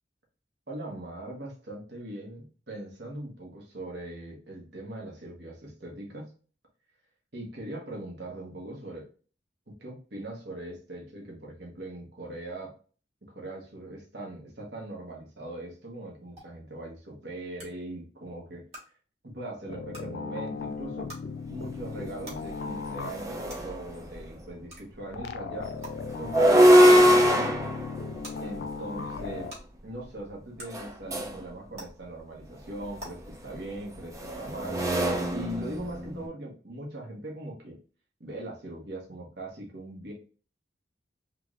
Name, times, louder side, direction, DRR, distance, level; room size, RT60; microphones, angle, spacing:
voice 1, 0.7-6.3 7.3-9.1 9.7-12.7 13.2-18.7 19.2-21.1 21.5-25.8 26.2-27.6 28.4-29.5 29.8-34.8 35.3-37.8 38.2-40.1, right 1 dB, 60° right, -1 dB, 1.1 m, -40 dB
sound 1, 16.4-16.5 17.6-17.7 18.7-18.8 19.9-20.0 21.1-21.2 22.2-22.3 23.5-23.6 24.7-24.8 25.8-25.9 27.1-27.2 28.2-28.3 29.5-29.6 30.6-30.7 31.7-31.8 33.0-33.1, right 1 dB, 35° right, 1.3 m, -41 dB
sound 2, 19.7-23.5 25.1-29.5, left 4 dB, 60° left, 0.4 m, -37 dB
sound 3, 21.8-21.9 22.3-24.3 26.1-29.4 30.7-31.4 32.8-36.3, equal, 15° right, 0.4 m, -23 dB
3.3 x 3.2 x 2.4 m, 0.39 s
head